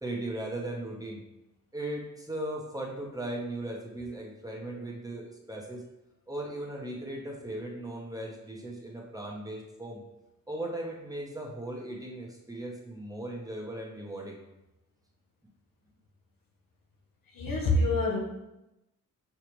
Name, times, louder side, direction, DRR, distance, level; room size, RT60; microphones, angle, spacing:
voice 1, 0.0-1.2 1.7-5.8 6.3-10.0 10.5-14.4, right 1 dB, 10° right, -2 dB, 1.0 m, -37 dB
voice 2, 17.3-18.2, left 2 dB, 70° left, 0 dB, 1.0 m, -26 dB
6.8 x 2.4 x 3.1 m, 0.94 s
cardioid pair, 70°, 34 cm